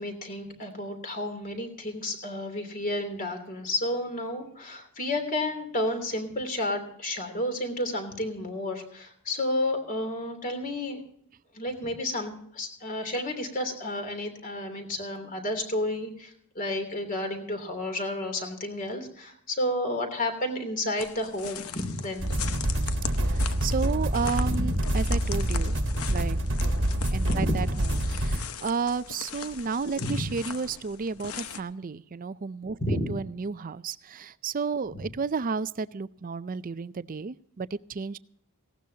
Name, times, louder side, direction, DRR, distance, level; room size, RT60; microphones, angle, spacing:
voice 1, 0.0-11.0 11.5-22.6 24.4-24.7 27.3-27.6 30.0-30.2 32.8-33.1 34.9-35.0, left 1 dB, 40° left, 5 dB, 3.1 m, -31 dB
sound 1, 21.0-31.6, left 7 dB, 70° left, 0.9 m, -40 dB
sound 2, 22.2-28.4, right 1 dB, 55° right, 1.3 m, -26 dB
voice 2, 23.2-25.8 26.1-26.4 27.1-38.2, right 5 dB, 35° right, 15 dB, 0.4 m, -32 dB
18.5 x 16.5 x 2.8 m, 0.66 s
head